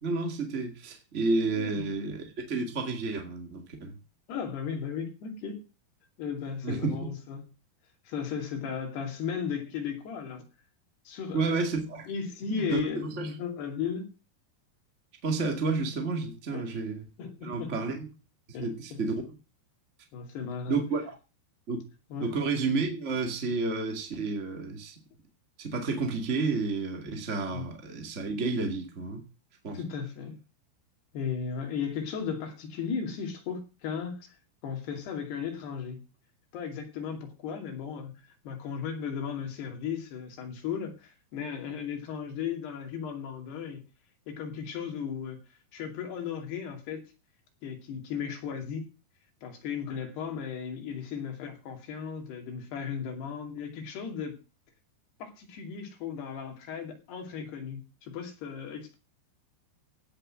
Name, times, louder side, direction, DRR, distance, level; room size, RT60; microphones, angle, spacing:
voice 1, 0.0-4.0 6.6-7.1 11.3-12.1 12.6-13.3 15.2-17.1 17.4-18.1 18.6-19.3 20.7-21.2 21.7-21.9 22.2-25.0 25.6-29.2 29.6-29.8, right 3 dB, 30° right, 1.4 m, -31 dB
voice 2, 1.6-1.9 4.3-5.6 6.2-7.5 8.1-10.4 11.1-11.7 12.1-14.1 16.5-16.8 17.2-17.8 18.5-19.0 20.1-20.8 22.1-22.3 27.5-27.7 29.7-30.4 31.1-34.4 34.6-36.0 36.5-43.8 44.3-45.4 45.7-47.1 47.6-48.9 49.4-54.4 55.2-59.0, left 7 dB, 75° left, 4.5 m, -36 dB
17.0 x 6.8 x 6.2 m
omnidirectional pair, 4.8 m